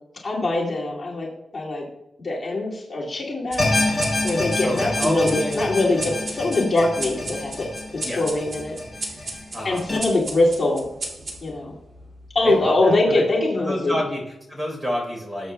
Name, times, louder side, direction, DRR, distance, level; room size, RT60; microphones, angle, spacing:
voice 1, 0.2-1.3 1.5-1.8 2.2-3.9 4.2-7.7 8.2-8.7 9.6-10.8 11.4-11.7 12.3-14.0, left 2 dB, 35° left, -6 dB, 2.3 m, -22 dB
sound 1, 3.5-12.4, right 2 dB, 45° right, 2.3 m, -36 dB
sound 2, 3.6-10.0, left 2 dB, ahead, 3.4 m, -27 dB
voice 2, 4.6-5.7 6.1-6.2 8.0-8.2 9.5-9.9 12.4-13.2 13.6-15.5, equal, 20° right, 0 dB, 3.8 m, -28 dB
19.5 x 8.2 x 2.2 m, 0.87 s
wide cardioid pair, 170°, 0 cm